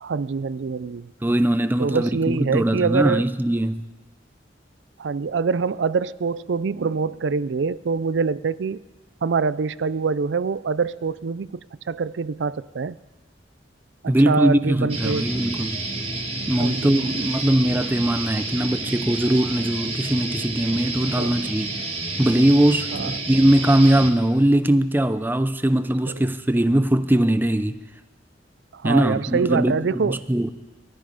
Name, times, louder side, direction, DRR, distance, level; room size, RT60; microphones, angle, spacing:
voice 1, 0.0-1.1 1.8-3.3 5.0-8.8 9.2-13.0 14.0-15.3 16.6-17.3 21.2-21.4 22.9-23.1 26.1-26.3 28.7-30.2, right 5 dB, 75° right, 0.5 m, -25 dB
voice 2, 1.2-3.8 14.1-15.8 16.5-21.7 22.2-27.8 28.8-30.5, right 1 dB, 10° right, 0.5 m, -20 dB
sound 1, 14.9-24.1, right 3 dB, 35° right, 2.0 m, -30 dB
20.0 x 13.5 x 5.1 m
head